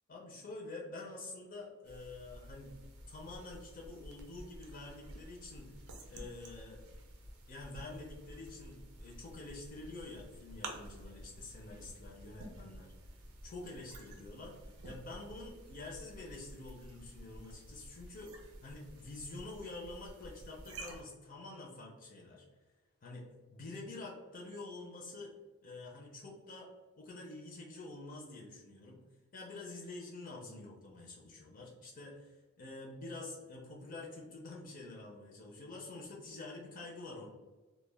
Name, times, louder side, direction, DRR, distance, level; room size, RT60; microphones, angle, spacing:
voice 1, 0.1-2.8 3.1-5.7 6.1-6.8 7.5-12.9 13.4-22.5 23.0-25.3 25.6-26.7 27.0-29.0 29.3-37.3, left 2 dB, 40° left, -2 dB, 0.4 m, -47 dB
sound 1, 1.8-21.0, right 1 dB, 80° right, 0.5 m, -51 dB
2.1 x 2.1 x 3.2 m, 1.2 s
head